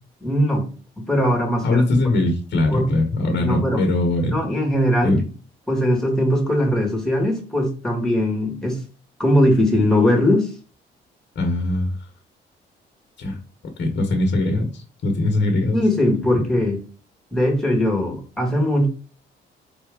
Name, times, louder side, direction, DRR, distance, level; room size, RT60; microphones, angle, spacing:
voice 1, 0.2-0.7 1.0-1.8 2.7-2.9 3.4-3.8 4.3-5.2 5.7-8.8 9.2-10.5 15.7-16.8 17.3-18.9, left 1 dB, 5° left, 0 dB, 2.0 m, -20 dB
voice 2, 1.6-4.4 5.0-5.2 11.3-12.0 13.2-13.4 13.8-15.8, left 2 dB, 60° left, 3 dB, 1.2 m, -21 dB
4.3 x 3.4 x 3.6 m, 0.36 s
cardioid pair, 90°, 20 cm